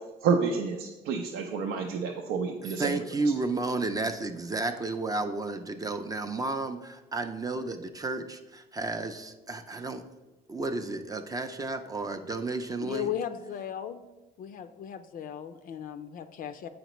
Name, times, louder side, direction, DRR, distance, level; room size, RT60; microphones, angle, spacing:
voice 1, 0.2-3.0, right 5 dB, 90° right, 2 dB, 0.6 m, -29 dB
voice 2, 2.6-10.0 10.5-13.1, right 3 dB, 20° right, 6 dB, 0.4 m, -32 dB
voice 3, 12.8-14.0 14.4-16.7, left 9 dB, 55° left, 9 dB, 0.4 m, -36 dB
7.9 x 5.0 x 3.0 m, 1.1 s
cardioid pair, 110°, 17 cm